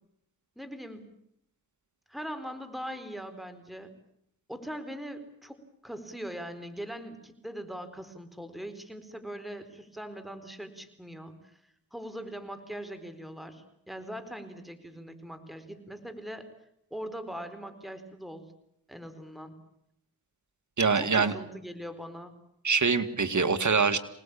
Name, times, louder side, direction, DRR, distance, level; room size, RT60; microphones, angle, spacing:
voice 1, 0.6-1.1 2.1-3.9 4.5-5.6 5.8-11.5 11.9-16.5 16.9-18.5 18.9-19.6 20.9-22.3, equal, ahead, 9 dB, 4.3 m, -41 dB
voice 2, 20.8-21.3 22.6-24.0, right 5 dB, 50° right, 9 dB, 2.3 m, -24 dB
26.0 x 19.5 x 8.8 m, 0.75 s
cardioid pair, 55°, 37 cm